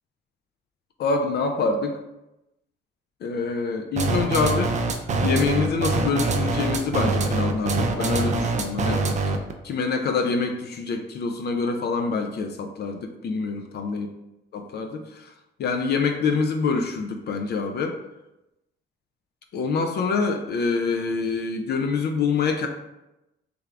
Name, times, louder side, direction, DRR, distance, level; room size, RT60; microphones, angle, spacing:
voice 1, 1.0-2.0 3.2-4.9 5.2-9.2 9.6-14.1 14.5-15.3 15.6-18.0 19.5-22.7, left 4 dB, 55° left, 4 dB, 0.4 m, -26 dB
sound 1, 4.0-9.5, right 3 dB, 35° right, 0.4 m, -24 dB
3.4 x 2.4 x 3.3 m, 0.93 s
cardioid pair, 90°, 20 cm